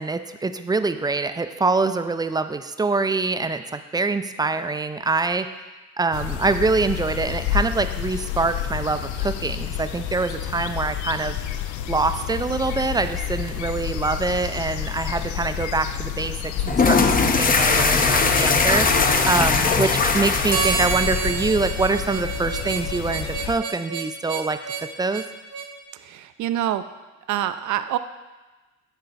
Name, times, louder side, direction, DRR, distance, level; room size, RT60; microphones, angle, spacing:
voice 1, 0.0-5.5 6.0-11.4 11.9-25.2, right 3 dB, 15° right, 10 dB, 0.3 m, -25 dB
sound 1, 6.1-23.5, left 10 dB, 75° left, 0.5 m, -30 dB
sound 2, 16.6-21.7, left 4 dB, 30° left, 0.6 m, -20 dB
Harmonica, 20.5-25.7, right 5 dB, 55° right, 0.9 m, -29 dB
voice 2, 26.0-26.8 27.3-28.0, right 12 dB, 70° right, 11 dB, 0.5 m, -25 dB
9.1 x 4.1 x 4.0 m, 1.2 s
cardioid pair, 90°, 30 cm